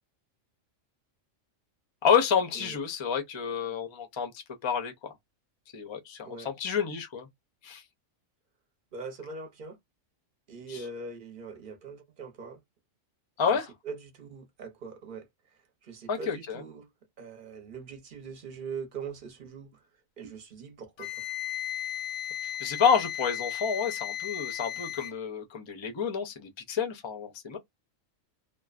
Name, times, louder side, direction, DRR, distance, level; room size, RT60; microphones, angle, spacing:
voice 1, 2.0-5.1 5.7-7.3 7.6-7.8 10.7-10.8 13.4-13.7 16.1-16.6 22.6-27.6, left 7 dB, 40° left, 0.4 m, -29 dB
voice 2, 8.9-9.8 10.5-12.6 13.4-16.9 17.2-19.9 20.2-21.2, right 4 dB, 45° right, 0.8 m, -42 dB
Wind instrument woodwind instrument, 21.0-25.2, left 12 dB, 85° left, 1.0 m, -35 dB
2.5 x 2.2 x 2.3 m
omnidirectional pair, 1.4 m